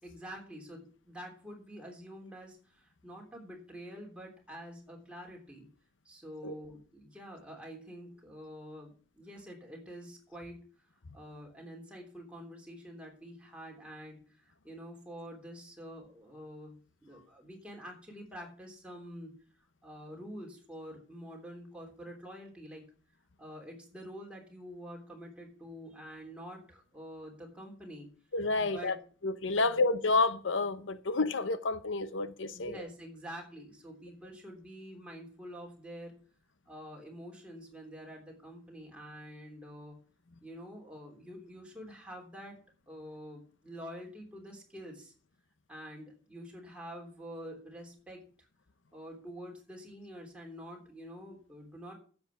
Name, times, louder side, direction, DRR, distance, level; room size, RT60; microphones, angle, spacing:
voice 1, 0.0-5.7 6.0-10.6 11.1-19.4 19.8-22.8 23.4-28.1 28.6-29.0 29.5-29.8 32.5-36.1 36.7-40.0 40.4-42.6 42.9-45.1 45.7-48.2 48.9-51.9, equal, 5° right, 3.3 m, -47 dB
voice 2, 28.3-28.9 29.2-32.8, left 3 dB, 90° left, 0.8 m, -29 dB
10.5 x 7.9 x 7.1 m
head